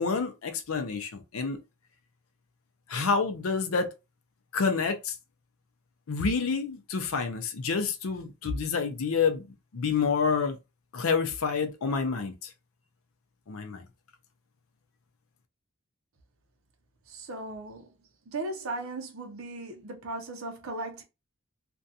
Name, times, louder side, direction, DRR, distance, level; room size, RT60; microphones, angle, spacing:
voice 1, 0.0-1.6 2.9-3.9 4.5-5.1 6.1-9.4 9.7-10.6 10.9-12.5 13.5-13.8, left 5 dB, 75° left, 0.5 m, -28 dB
voice 2, 17.1-17.9 18.3-21.0, right 2 dB, 70° right, 0.6 m, -37 dB
2.5 x 2.2 x 2.6 m
head